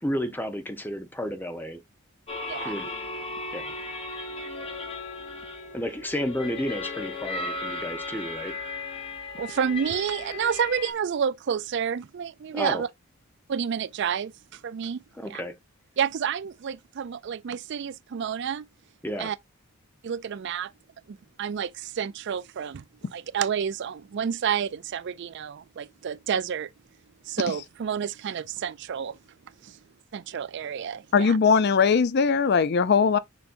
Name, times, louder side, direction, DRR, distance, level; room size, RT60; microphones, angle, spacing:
voice 1, 0.0-1.8 2.6-2.9 3.5-3.8 5.7-8.5 12.5-12.8 15.2-15.6 19.0-19.3, equal, 10° left, 1.0 m, -32 dB
sound 1, 2.3-10.9, left 3 dB, 25° left, 1.3 m, -36 dB
voice 2, 9.4-12.9 13.5-15.4 16.0-18.6 19.2-19.4 20.0-20.7 21.1-26.7 27.2-29.2 29.6-29.8 30.1-31.4, right 7 dB, 55° right, 0.4 m, -30 dB
voice 3, 31.1-33.2, left 5 dB, 50° left, 0.4 m, -20 dB
7.0 x 5.5 x 2.6 m
head